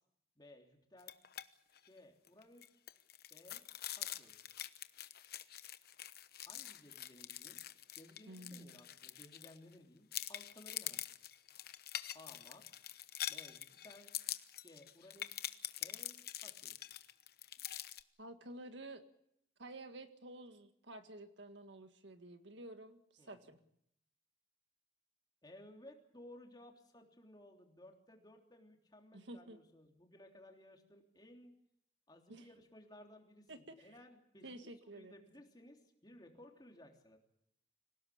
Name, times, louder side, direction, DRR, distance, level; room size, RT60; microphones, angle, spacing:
voice 1, 0.4-1.2 1.8-2.8 3.3-3.6 4.0-4.4 6.5-7.6 8.0-11.2 12.1-12.7 13.3-14.2 14.6-16.8 23.2-23.6 25.4-31.5 32.1-34.6 34.9-37.2, left 1 dB, 20° left, 2 dB, 3.4 m, -59 dB
sound 1, 1.0-1.5 1.8-1.9 2.3-9.7 10.1-18.0, left 12 dB, 50° left, 1.0 m, -45 dB
voice 2, 8.3-8.8 18.2-19.0 19.6-23.6 29.1-29.6 32.3-32.5 33.5-34.0 34.4-35.1, right 1 dB, 70° right, 8 dB, 1.8 m, -51 dB
26.0 x 17.5 x 8.6 m, 0.73 s
head